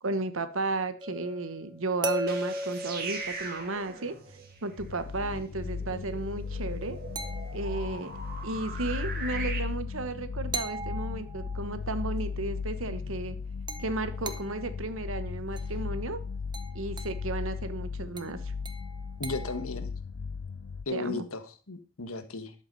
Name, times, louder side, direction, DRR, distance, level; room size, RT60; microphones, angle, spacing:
voice 1, 0.0-4.2 4.6-7.0 7.5-8.1 8.4-13.4 13.8-16.2 16.7-18.5 20.9-21.2, right 2 dB, 75° right, 12 dB, 1.1 m, -34 dB
sound 1, 1.0-4.1 7.2-8.0 10.5-11.7 13.7-14.7 15.6-15.8 16.5-17.3 18.2-19.7, right 1 dB, 20° right, 0.8 m, -38 dB
sound 2, 2.1-9.6, right 4 dB, 45° right, 2.0 m, -41 dB
sound 3, 4.8-20.8, left 5 dB, 60° left, 0.4 m, -36 dB
voice 2, 19.2-19.9 20.8-22.5, left 3 dB, 90° left, 9 dB, 1.5 m, -35 dB
11.0 x 8.2 x 5.3 m, 0.37 s
head